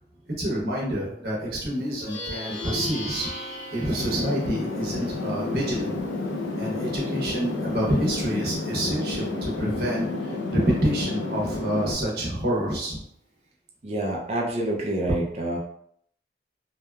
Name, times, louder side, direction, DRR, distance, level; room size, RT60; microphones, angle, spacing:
voice 1, 0.4-3.3 3.7-6.0 6.6-13.0, right 1 dB, 60° right, -4 dB, 0.8 m, -27 dB
Plucked string instrument, 1.9-11.6, left 1 dB, 45° left, 0.6 m, -40 dB
sound 1, 4.0-11.9, left 2 dB, 90° left, 0.4 m, -30 dB
voice 2, 13.8-15.6, right 1 dB, 35° right, -1 dB, 0.3 m, -27 dB
2.7 x 2.2 x 2.2 m, 0.69 s
head